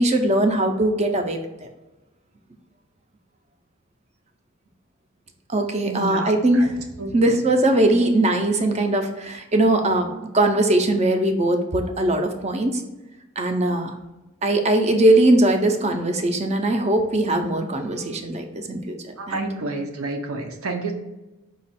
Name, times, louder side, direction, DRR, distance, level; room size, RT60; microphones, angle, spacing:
voice 1, 0.0-1.4 5.5-6.7 7.1-12.8 13.4-13.9 14.4-18.9 19.3-19.5, right 1 dB, 30° right, 5 dB, 0.5 m, -20 dB
voice 2, 5.8-6.7 7.0-7.3 19.2-20.9, right 3 dB, 80° right, 4 dB, 0.6 m, -30 dB
5.1 x 2.3 x 4.1 m, 1.0 s
head